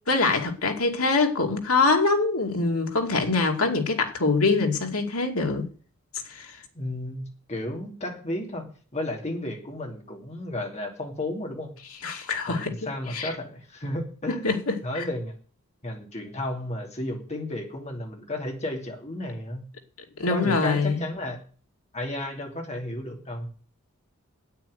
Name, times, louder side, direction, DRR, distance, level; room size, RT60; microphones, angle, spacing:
voice 1, 0.1-5.7 6.3-6.5 12.0-12.7 13.1-13.3 14.3-14.8 20.2-21.0, left 3 dB, 90° left, 2.6 m, -24 dB
voice 2, 6.7-11.8 12.5-14.5 14.8-15.4 15.8-19.7 20.3-21.4 21.9-23.5, left 1 dB, 30° left, 3.0 m, -33 dB
9.2 x 9.1 x 9.7 m
head